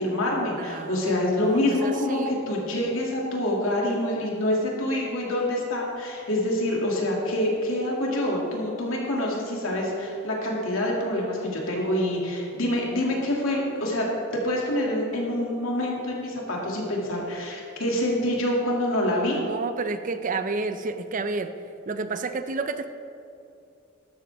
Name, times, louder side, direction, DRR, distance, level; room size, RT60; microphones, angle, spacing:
voice 1, 0.0-14.1 14.3-19.4, left 1 dB, 80° left, -2 dB, 2.5 m, -26 dB
voice 2, 0.6-2.3 19.0-21.5 21.9-22.9, right 3 dB, 40° right, 9 dB, 0.5 m, -31 dB
12.5 x 12.5 x 3.5 m, 2.6 s
head